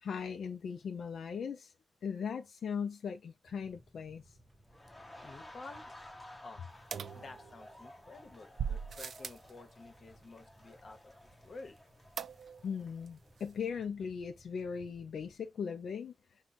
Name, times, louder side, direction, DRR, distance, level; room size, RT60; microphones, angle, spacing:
voice 1, 0.0-1.7 2.0-4.4 12.6-16.1, left 6 dB, 85° left, 0.4 m, -39 dB
sound 1, 3.5-15.4, right 1 dB, 15° right, 0.8 m, -63 dB
sound 2, 4.7-13.5 13.8-14.0, left 1 dB, 15° left, 1.0 m, -55 dB
voice 2, 5.2-5.9 6.4-6.6 7.1-11.8, left 3 dB, 55° left, 1.0 m, -51 dB
sound 3, 6.9-7.9 8.6-9.5 12.2-12.8 13.1-13.2 13.4-13.5, right 7 dB, 75° right, 0.3 m, -40 dB
4.4 x 2.2 x 4.1 m
wide cardioid pair, 120°, 0 cm